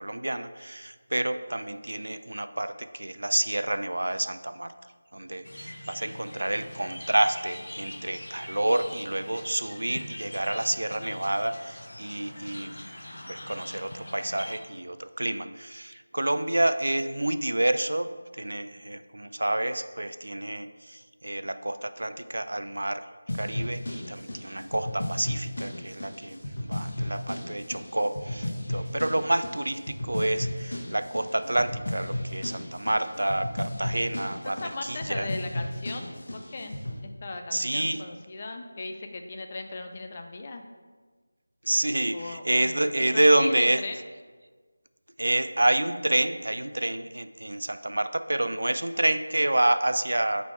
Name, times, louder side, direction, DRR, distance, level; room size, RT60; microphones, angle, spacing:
voice 1, 0.0-4.7 5.1-12.8 13.3-23.0 23.3-34.6 34.9-35.3 37.5-38.0 41.7-43.8 45.2-50.4, right 1 dB, 75° right, 11 dB, 0.4 m, -28 dB
sound 1, 5.4-14.6, left 1 dB, 85° left, 0.8 m, -42 dB
sound 2, 23.3-37.0, left 1 dB, 55° left, 1.0 m, -34 dB
voice 2, 34.4-40.6 42.1-44.0, left 3 dB, 20° left, 5 dB, 0.3 m, -38 dB
9.4 x 4.0 x 3.2 m, 1.4 s
figure-of-eight pair, 180°, 0 cm